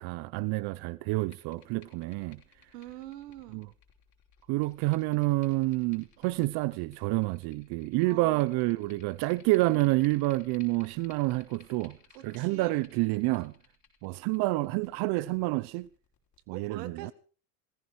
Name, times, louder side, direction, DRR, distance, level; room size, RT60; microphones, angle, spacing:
voice 1, 0.0-2.4 3.5-3.7 4.5-12.0 12.2-13.5 14.0-15.9 16.5-17.1, right 20 dB, 55° right, 0.7 m, -28 dB
sound 1, 1.1-16.4, left 7 dB, 35° left, 5.3 m, -61 dB
voice 2, 2.7-3.6 8.0-8.5 12.1-12.8 16.5-17.1, right 12 dB, 85° right, 2.0 m, -44 dB
18.5 x 15.0 x 4.8 m
supercardioid pair, 120°, 47 cm